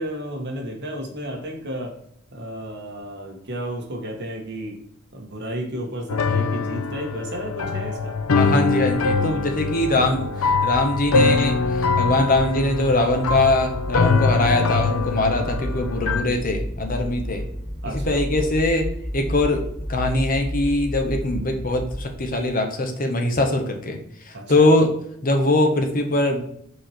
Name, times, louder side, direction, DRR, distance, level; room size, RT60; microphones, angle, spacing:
voice 1, 0.0-1.9 2.3-4.8 5.1-8.1 17.8-18.2 24.3-24.7, equal, 55° right, 1 dB, 1.8 m, -32 dB
sound 1, 6.1-16.2, left 4 dB, 90° left, 0.6 m, -23 dB
voice 2, 8.3-11.6 12.0-17.4 18.1-24.0 24.3-24.9 25.2-26.4, left 2 dB, 40° left, 4 dB, 1.2 m, -22 dB
sound 2, 11.2-22.6, equal, 10° left, 1.2 m, -33 dB
4.9 x 4.8 x 4.4 m, 0.70 s
head